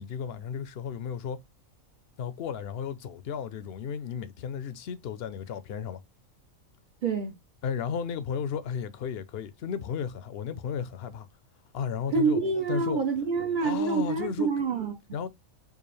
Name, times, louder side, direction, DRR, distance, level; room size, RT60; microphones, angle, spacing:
voice 1, 0.0-1.4 2.2-6.0 7.6-11.3 11.7-12.4 12.7-13.0 13.6-14.5 15.1-15.3, left 7 dB, 65° left, 0.7 m, -34 dB
voice 2, 7.0-7.3 12.1-14.9, right 4 dB, 55° right, 0.6 m, -27 dB
4.7 x 2.5 x 3.1 m
omnidirectional pair, 1.4 m